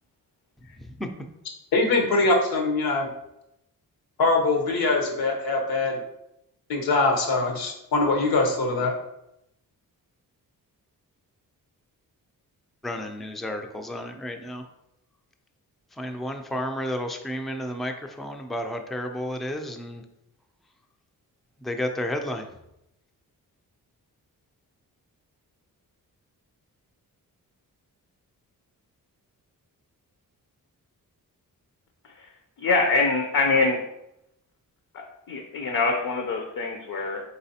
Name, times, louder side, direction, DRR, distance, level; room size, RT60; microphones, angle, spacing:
voice 1, 1.7-3.1 4.2-6.0 6.7-8.9, left 3 dB, 85° left, 1 dB, 0.9 m, -23 dB
voice 2, 12.8-14.6 16.0-20.0 21.6-22.5, left 1 dB, ahead, 5 dB, 0.3 m, -32 dB
voice 3, 32.6-33.8 35.3-37.2, left 3 dB, 65° left, 3 dB, 0.6 m, -24 dB
4.0 x 3.8 x 2.8 m, 0.83 s
cardioid pair, 95°, 35 cm